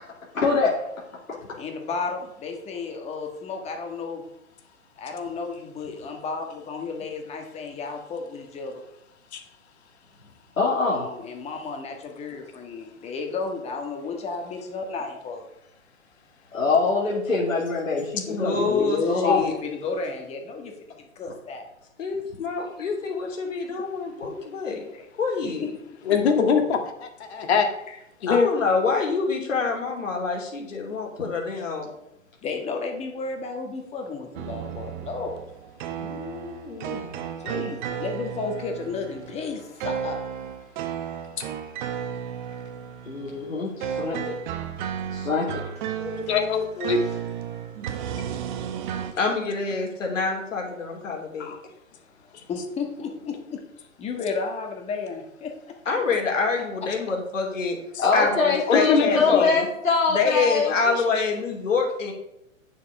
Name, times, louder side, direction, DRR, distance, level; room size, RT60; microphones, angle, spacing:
voice 1, 0.3-0.8 10.6-11.1 16.5-18.7 19.1-19.4 43.0-44.3 45.1-45.6 58.0-61.0, left 4 dB, 90° left, -4 dB, 2.5 m, -24 dB
voice 2, 1.6-4.2 5.0-8.8 10.9-15.4 18.4-21.6 24.9-25.1 25.4-25.7 32.4-35.4 37.4-40.2 52.5-55.5 59.3-59.4, left 4 dB, 15° left, 3 dB, 1.5 m, -32 dB
voice 3, 18.3-19.5 22.0-24.9 25.2-25.7 28.3-31.9 35.8-37.2 49.1-51.5 55.8-57.8 58.1-59.7 60.1-62.1, left 4 dB, 70° left, 1 dB, 3.2 m, -27 dB
voice 4, 26.1-27.7 28.2-28.5 45.9-47.0 51.4-51.6 57.9-58.0 58.7-59.5 60.7-61.2, left 6 dB, 55° left, 5 dB, 1.9 m, -23 dB
sound 1, 34.3-49.1, right 8 dB, 35° right, 1.0 m, -33 dB
9.1 x 6.7 x 4.8 m, 0.81 s
hypercardioid pair, 130°, 39 cm